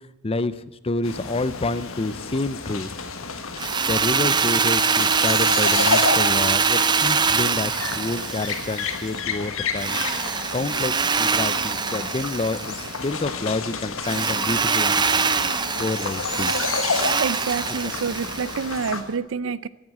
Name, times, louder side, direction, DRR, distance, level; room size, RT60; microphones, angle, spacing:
voice 1, 0.2-2.9 3.9-10.0 10.5-15.3 15.8-16.7 17.8-17.9, left 2 dB, 25° left, 15 dB, 0.6 m, -28 dB
sound 1, 1.0-19.0, left 4 dB, 65° left, 1.5 m, -31 dB
Drill, 3.6-9.1 9.8-13.1 14.0-18.8, right 5 dB, 20° right, 0.6 m, -23 dB
voice 2, 17.2-19.7, right 5 dB, 65° right, 18 dB, 0.5 m, -27 dB
15.0 x 8.8 x 9.5 m, 1.0 s
head